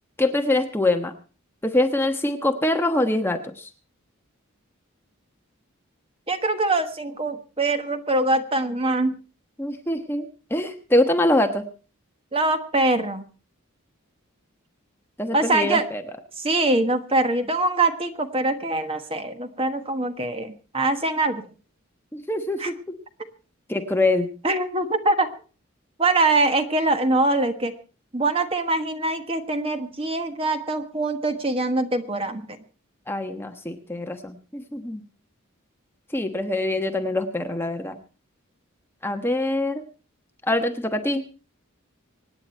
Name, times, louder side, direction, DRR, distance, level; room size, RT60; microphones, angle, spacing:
voice 1, 0.2-1.1 1.6-3.7 9.6-11.6 15.2-16.0 22.1-22.8 23.7-24.3 33.1-35.0 36.1-38.0 39.0-39.8 40.4-41.2, left 1 dB, 10° left, 5 dB, 1.1 m, -24 dB
voice 2, 6.3-9.1 12.3-13.2 15.3-15.8 16.4-21.4 22.6-22.7 24.4-25.3 26.0-27.7 28.1-32.6, right 2 dB, 25° right, 8 dB, 1.3 m, -23 dB
25.0 x 9.8 x 4.4 m, 0.37 s
head